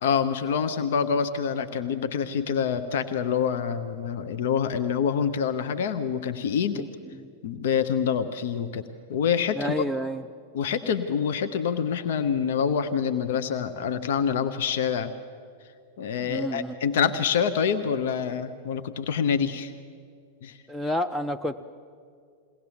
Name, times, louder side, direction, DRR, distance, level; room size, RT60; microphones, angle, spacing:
voice 1, 0.0-6.9 7.4-9.8 10.5-15.1 16.0-19.7 20.4-20.6, left 7 dB, 60° left, 11 dB, 0.8 m, -26 dB
voice 2, 6.7-7.3 9.5-10.3 16.2-16.7 20.7-21.7, equal, 5° left, 8 dB, 0.5 m, -30 dB
22.0 x 17.5 x 7.1 m, 2.3 s
figure-of-eight pair, 95°, 0 cm